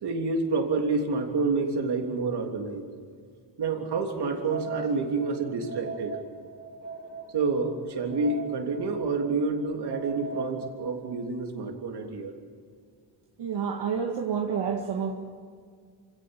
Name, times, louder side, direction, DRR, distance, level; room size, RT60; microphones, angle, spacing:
voice 1, 0.0-2.8 3.6-6.2 7.3-12.3, right 3 dB, 70° right, 2 dB, 3.4 m, -28 dB
sound 1, 4.2-11.3, right 4 dB, 40° right, 4.1 m, -40 dB
voice 2, 13.4-15.1, right 7 dB, 85° right, 1 dB, 2.0 m, -29 dB
27.5 x 16.5 x 9.1 m, 2.1 s
cardioid pair, 105°, 41 cm